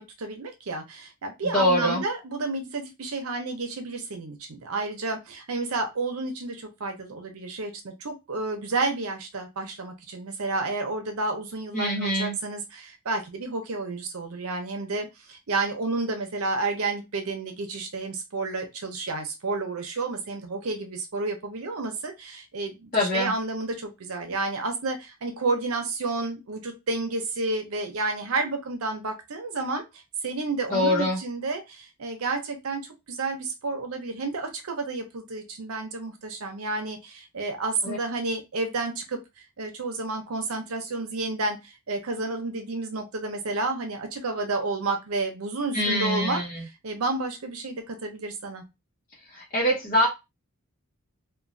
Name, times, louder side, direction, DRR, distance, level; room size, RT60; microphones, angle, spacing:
voice 1, 0.0-32.8 33.1-39.2 39.6-48.6, right 3 dB, 75° right, 5 dB, 0.7 m, -31 dB
voice 2, 1.5-2.0 11.7-12.4 22.9-23.3 30.7-31.2 37.8-38.0 45.7-46.4 49.3-50.1, left 1 dB, 35° left, -2 dB, 0.8 m, -24 dB
2.9 x 2.2 x 2.6 m, 0.23 s
head